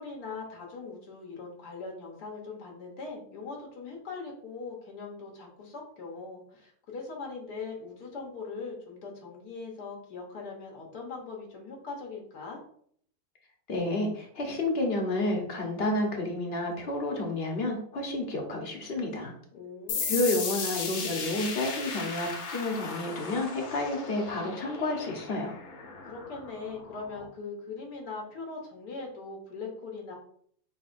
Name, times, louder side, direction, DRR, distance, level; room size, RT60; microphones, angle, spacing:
voice 1, 0.0-12.6 19.5-20.2 26.0-30.1, left 4 dB, 85° left, 0 dB, 1.6 m, -41 dB
voice 2, 13.7-19.3 20.0-25.5, left 2 dB, 45° left, 1 dB, 0.9 m, -30 dB
sound 1, 19.9-27.3, left 5 dB, 65° left, 1.2 m, -36 dB
4.6 x 4.0 x 2.5 m, 0.62 s
omnidirectional pair, 1.7 m